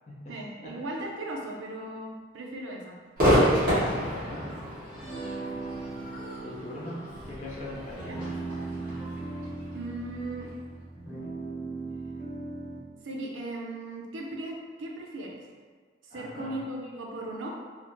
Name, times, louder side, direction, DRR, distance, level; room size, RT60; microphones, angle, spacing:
voice 1, 0.3-3.0 8.1-8.2 9.4-10.5 13.0-15.5 16.0-17.5, right 1 dB, 85° right, -1 dB, 0.5 m, -37 dB
Crowd / Fireworks, 3.2-10.5, equal, 50° right, 1.3 m, -29 dB
sound 1, 3.6-12.8, right 3 dB, 65° left, 1.2 m, -39 dB
voice 2, 3.7-4.5 6.4-8.3 16.1-16.6, left 1 dB, 35° left, -5 dB, 0.5 m, -41 dB
3.3 x 2.0 x 2.6 m, 1.5 s
head